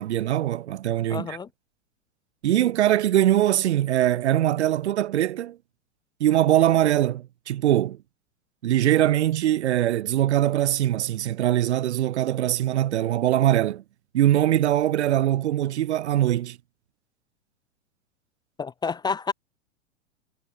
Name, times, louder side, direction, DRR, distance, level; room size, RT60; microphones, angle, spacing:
voice 1, 0.0-1.4 2.4-5.6 6.2-8.0 8.6-13.8 14.1-16.6, right 12 dB, 60° right, 1.5 m, -22 dB
voice 2, 1.1-1.5 18.6-19.3, left 5 dB, 10° left, 0.7 m, -29 dB
figure-of-eight pair, 100°, 38 cm